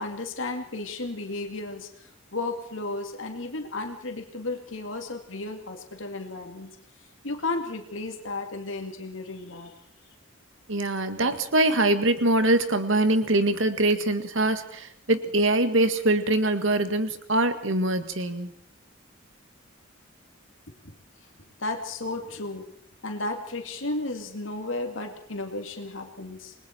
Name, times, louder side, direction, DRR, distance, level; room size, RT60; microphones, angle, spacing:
voice 1, 0.0-9.8 20.7-20.9 21.6-22.7 23.0-26.5, left 2 dB, 75° left, 4 dB, 2.3 m, -34 dB
voice 2, 10.7-18.5, right 2 dB, 75° right, 9 dB, 1.9 m, -23 dB
28.0 x 20.5 x 4.5 m, 0.67 s
head